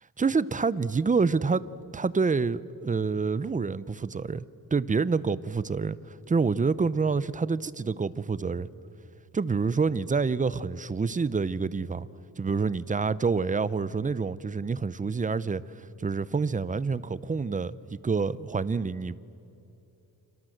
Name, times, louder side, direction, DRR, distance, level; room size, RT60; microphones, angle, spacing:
voice 1, 0.2-1.6 1.9-4.4 4.7-8.7 9.3-12.1 12.4-19.2, right 4 dB, 20° right, 0.6 m, -27 dB
29.5 x 25.5 x 7.9 m
wide cardioid pair, 130°, 38 cm